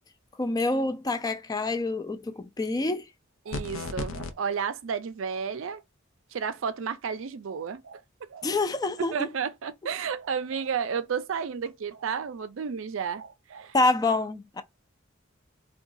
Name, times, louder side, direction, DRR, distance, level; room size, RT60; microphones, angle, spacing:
voice 1, 0.4-3.1 8.4-9.1 13.7-14.6, left 2 dB, 20° left, 0.3 m, -26 dB
voice 2, 3.4-5.8 6.3-8.5 9.0-13.8, right 6 dB, 70° right, 0.4 m, -32 dB
sound 1, 3.5-4.3, left 3 dB, 85° left, 0.5 m, -33 dB
3.8 x 2.2 x 2.6 m
head